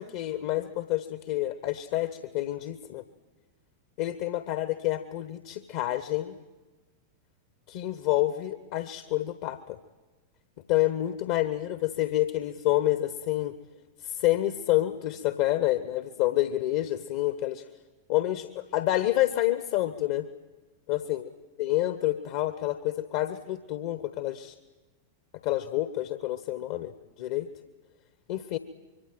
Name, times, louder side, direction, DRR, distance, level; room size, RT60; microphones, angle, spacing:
voice 1, 0.0-3.0 4.0-6.4 7.7-9.8 10.7-13.5 14.0-17.6 18.1-20.3 20.9-21.2 21.6-24.5 25.4-26.9 27.2-27.5 28.3-28.6, left 15 dB, 50° left, 12 dB, 1.0 m, -28 dB
25.0 x 23.5 x 9.1 m, 1.2 s
figure-of-eight pair, 90°, 0 cm